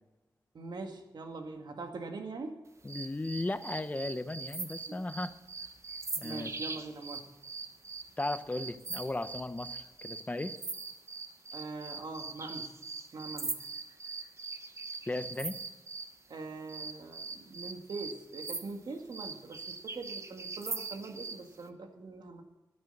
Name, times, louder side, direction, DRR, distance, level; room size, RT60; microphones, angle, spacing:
voice 1, 0.5-2.6 4.9-5.0 6.2-7.3 11.5-12.8 13.1-13.6 16.3-22.4, right 3 dB, 70° right, 4 dB, 2.0 m, -42 dB
voice 2, 2.8-5.3 6.2-6.5 8.2-10.6 15.1-15.6, left 2 dB, 20° left, 11 dB, 0.9 m, -36 dB
sound 1, 2.9-16.1 16.7-21.4, right 4 dB, 40° right, 0.9 m, -41 dB
12.5 x 10.0 x 6.7 m, 1.1 s
wide cardioid pair, 85°, 8 cm